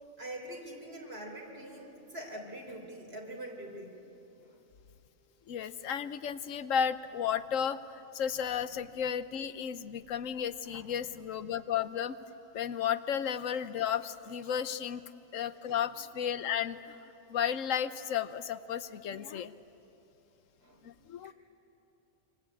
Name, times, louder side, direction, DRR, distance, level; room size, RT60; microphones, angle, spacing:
voice 1, 0.2-3.9 4.3-4.6 8.6-8.7 10.7-11.0 15.7-15.8 20.6-20.8 21.2-21.3, right 1 dB, 50° right, 0 dB, 4.3 m, -44 dB
voice 2, 5.5-12.2 12.5-15.0 15.3-17.0 17.3-19.5 20.8-21.3, left 8 dB, 90° left, 12 dB, 1.2 m, -33 dB
26.0 x 25.0 x 8.5 m, 3.0 s
omnidirectional pair, 1.3 m